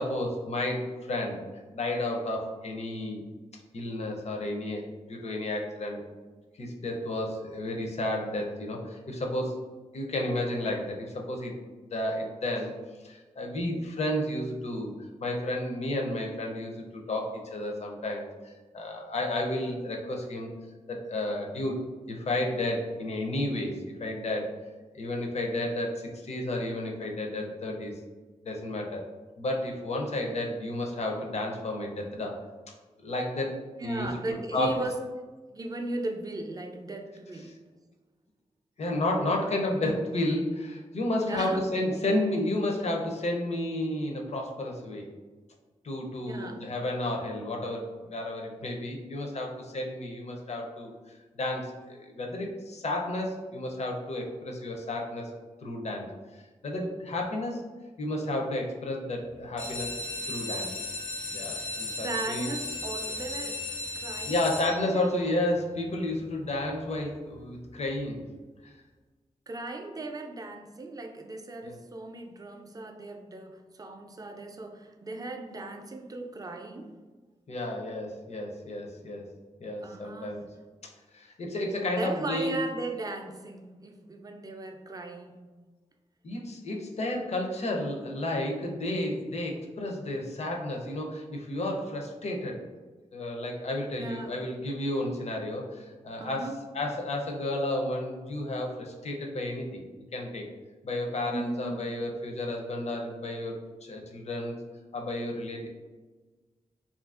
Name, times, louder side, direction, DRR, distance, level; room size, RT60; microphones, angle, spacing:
voice 1, 0.0-1.4 1.7-3.2 3.7-6.0 6.6-9.6 9.9-11.5 11.9-12.7 13.0-14.9 15.2-20.5 20.9-21.8 22.1-24.5 24.9-27.9 28.4-29.1 29.4-32.4 33.0-33.6 33.8-34.1 34.5-34.8 38.8-45.1 45.8-50.9 51.4-55.3 55.6-56.1 56.3-57.6 58.0-59.9 60.3-60.7 61.3-62.5 64.2-68.2 68.6-68.7 71.6-71.8 77.5-79.3 79.6-80.5 80.8-82.5 86.2-92.6 93.1-99.8 100.1-100.5 100.8-103.6 103.8-104.6 104.9-105.7, left 1 dB, 55° left, 1 dB, 0.5 m, -32 dB
voice 2, 33.8-35.0 35.5-37.6 41.3-41.6 46.3-46.6 62.0-63.7 63.9-64.4 64.9-65.1 69.5-77.0 79.6-80.4 82.0-85.4 94.0-94.4 96.2-96.6 101.3-101.9, right 2 dB, 30° right, 4 dB, 0.3 m, -37 dB
sound 1, 59.4-65.2 65.8-66.3 66.7-66.8 67.0-67.1 67.5-67.7, left 2 dB, 85° left, 0.8 m, -36 dB
2.7 x 2.4 x 2.4 m, 1.3 s
wide cardioid pair, 70°, 13 cm